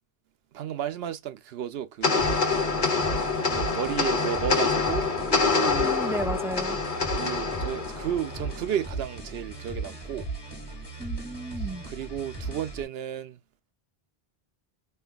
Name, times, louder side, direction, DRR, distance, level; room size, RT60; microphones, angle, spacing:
voice 1, 0.5-2.3 3.5-5.1 7.1-10.3 11.6-13.4, right 9 dB, 75° right, 0.8 m, -33 dB
sound 1, 2.0-8.7, left 4 dB, 50° left, 1.3 m, -26 dB
sound 2, 2.2-12.8, right 3 dB, 25° left, 1.7 m, -37 dB
voice 2, 5.3-6.8 11.0-11.9, right 2 dB, 5° right, 0.4 m, -33 dB
4.6 x 3.2 x 2.3 m
omnidirectional pair, 1.0 m